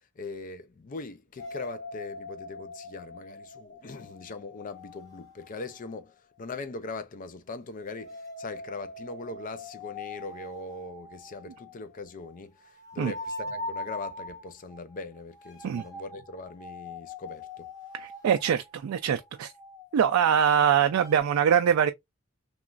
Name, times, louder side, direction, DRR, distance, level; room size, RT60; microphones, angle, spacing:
voice 1, 0.2-17.7, left 3 dB, 40° left, 0.4 m, -41 dB
sound 1, 1.4-6.0 7.8-21.2, left 2 dB, 15° left, 1.0 m, -43 dB
voice 2, 17.9-19.5 19.9-21.9, right 8 dB, 85° right, 0.3 m, -23 dB
3.0 x 2.4 x 2.4 m
head